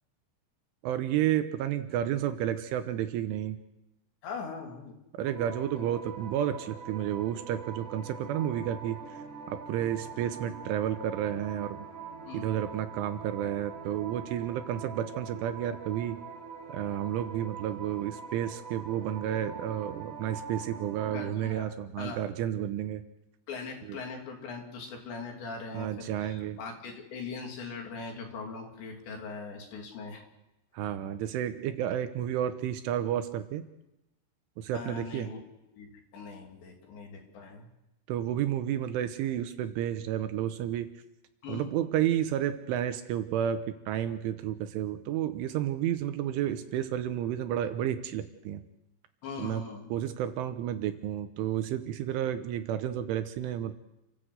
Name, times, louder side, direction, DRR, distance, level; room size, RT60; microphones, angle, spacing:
voice 1, 0.8-3.6 5.1-9.2 9.5-11.9 12.3-16.2 16.7-23.0 23.9-24.0 25.7-26.6 30.7-33.6 34.6-35.3 38.1-40.9 41.5-48.6 49.4-49.6 49.9-53.7, right 11 dB, 75° right, 9 dB, 3.3 m, -31 dB
voice 2, 4.2-5.0 5.8-5.9 12.3-12.5 21.1-22.3 23.5-30.2 34.7-35.4 35.7-37.7 41.4-41.7 49.2-49.9, left 4 dB, 60° left, 2 dB, 5.0 m, -41 dB
sound 1, 5.2-21.3, right 5 dB, 45° right, 3.2 m, -44 dB
29.0 x 14.5 x 8.0 m, 0.91 s
omnidirectional pair, 6.0 m